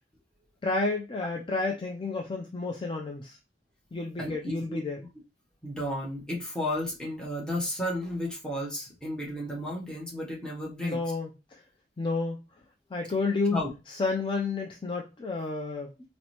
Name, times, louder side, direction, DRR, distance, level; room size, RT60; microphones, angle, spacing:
voice 1, 0.6-3.4 3.9-5.0 10.8-11.3 12.0-12.4 12.9-13.6 13.9-15.9, left 3 dB, 30° left, 1 dB, 0.4 m, -30 dB
voice 2, 4.2-4.8 5.6-11.0 13.5-13.7, left 1 dB, 5° left, -4 dB, 0.8 m, -33 dB
4.5 x 2.0 x 2.8 m, 0.27 s
head